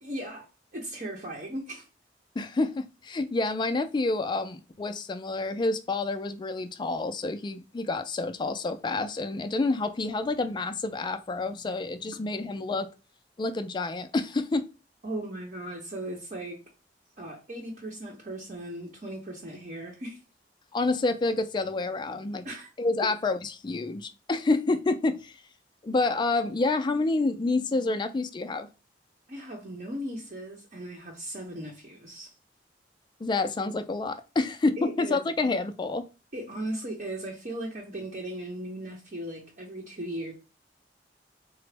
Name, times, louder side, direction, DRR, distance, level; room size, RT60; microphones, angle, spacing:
voice 1, 0.0-1.9 15.0-16.6 17.2-20.2 22.4-22.7 29.3-32.3 34.8-35.2 36.3-40.3, right 1 dB, 45° right, 0.8 m, -37 dB
voice 2, 2.4-12.9 13.4-14.7 20.7-22.5 22.8-25.3 25.8-28.7 33.2-36.1, left 3 dB, 25° left, 0.3 m, -28 dB
3.7 x 2.0 x 3.3 m
head